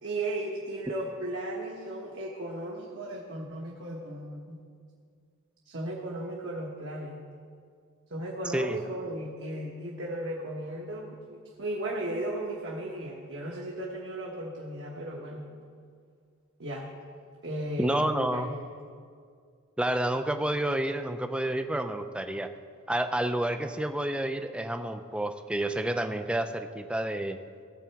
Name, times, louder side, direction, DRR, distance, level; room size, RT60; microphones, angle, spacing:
voice 1, 0.0-4.6 5.6-7.2 8.1-15.4 16.6-16.9 17.4-18.6, right 1 dB, 60° right, -2 dB, 1.2 m, -35 dB
voice 2, 17.8-18.5 19.8-22.5 22.9-27.4, right 1 dB, 5° right, 8 dB, 0.4 m, -29 dB
16.5 x 7.2 x 4.6 m, 2.2 s
head